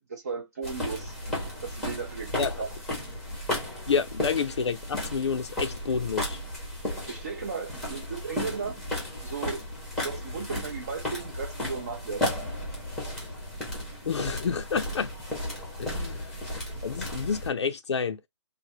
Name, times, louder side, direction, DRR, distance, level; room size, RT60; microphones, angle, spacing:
voice 1, 0.1-1.1 1.6-2.7 7.1-8.8 9.2-9.6 10.0-12.2, right 5 dB, 30° right, 0.5 m, -35 dB
sound 1, 0.6-17.5, left 1 dB, ahead, 0.7 m, -34 dB
voice 2, 3.9-6.4 14.1-15.1 15.8-18.2, left 6 dB, 65° left, 0.5 m, -29 dB
3.3 x 2.2 x 2.7 m
hypercardioid pair, 170°, 16 cm